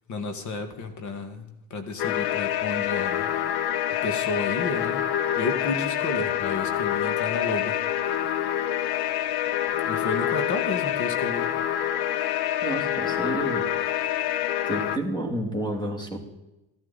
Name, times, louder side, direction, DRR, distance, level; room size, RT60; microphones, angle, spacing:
voice 1, 0.1-3.3 4.0-5.1 5.4-7.8 9.9-11.5, left 3 dB, 50° left, 8 dB, 2.0 m, -32 dB
sound 1, 2.0-15.0, left 11 dB, 70° left, 0.9 m, -26 dB
voice 2, 12.6-13.7 14.7-16.2, right 1 dB, 10° left, 4 dB, 2.8 m, -30 dB
13.5 x 13.0 x 4.2 m, 0.93 s
cardioid pair, 120°, 39 cm